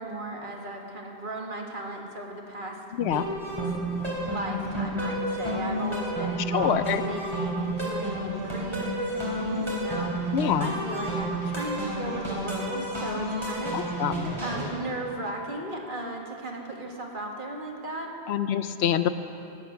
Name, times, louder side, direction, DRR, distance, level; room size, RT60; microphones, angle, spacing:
voice 1, 0.0-2.8 4.0-13.8 14.4-18.1 18.4-18.5, right 1 dB, 50° right, 0 dB, 1.9 m, -36 dB
voice 2, 2.9-3.3 6.5-7.0 10.3-10.7 13.7-14.3 18.3-19.1, left 9 dB, 80° left, 12 dB, 0.8 m, -26 dB
sound 1, 3.0-14.6, right 1 dB, 25° right, 3.6 m, -31 dB
19.0 x 8.5 x 6.3 m, 3.0 s
omnidirectional pair, 1.1 m